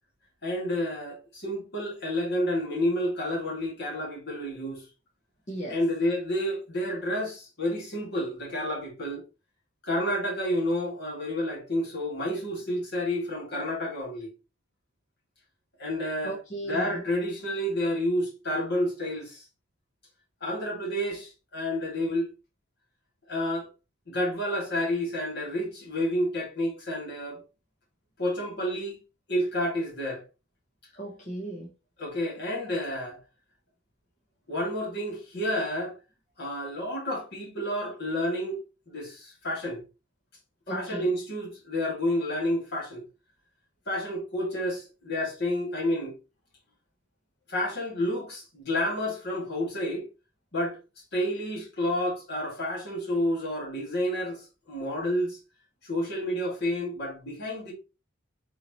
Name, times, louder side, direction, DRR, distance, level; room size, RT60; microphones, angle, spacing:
voice 1, 0.4-4.8 5.7-9.2 9.8-14.3 15.8-16.3 16.7-19.4 20.4-22.3 23.3-23.7 24.1-27.4 28.2-29.0 29.3-30.2 32.0-33.2 34.5-36.0 36.4-38.6 38.9-39.8 40.7-43.0 43.9-46.2 47.5-50.1 50.5-50.8 51.1-55.4 55.8-57.7, left 1 dB, 55° left, 2.1 m, -30 dB
voice 2, 5.5-5.8 16.2-17.0 31.0-31.7 40.7-41.1, right 1 dB, 40° left, 1.1 m, -36 dB
4.2 x 3.7 x 3.0 m
head